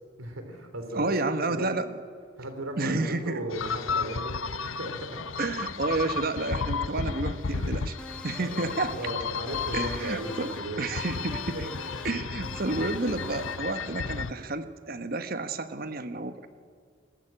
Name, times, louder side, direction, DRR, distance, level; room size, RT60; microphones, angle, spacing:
voice 1, 0.2-1.0 1.4-1.7 2.4-4.4 4.6-5.2 7.0-7.9 8.4-10.8 11.5-11.8 12.1-12.2, right 1 dB, 90° right, 6 dB, 3.1 m, -37 dB
voice 2, 0.9-1.9 2.8-3.4 5.4-7.9 8.2-8.9 9.7-11.7 12.0-16.5, right 2 dB, 45° right, 10 dB, 1.1 m, -30 dB
sound 1, 3.5-14.3, left 5 dB, 75° left, 0.8 m, -33 dB
sound 2, 8.0-9.2 9.5-10.7 10.9-12.1 12.4-13.6, left 1 dB, 5° left, 0.6 m, -45 dB
21.0 x 17.5 x 8.8 m, 2.2 s
head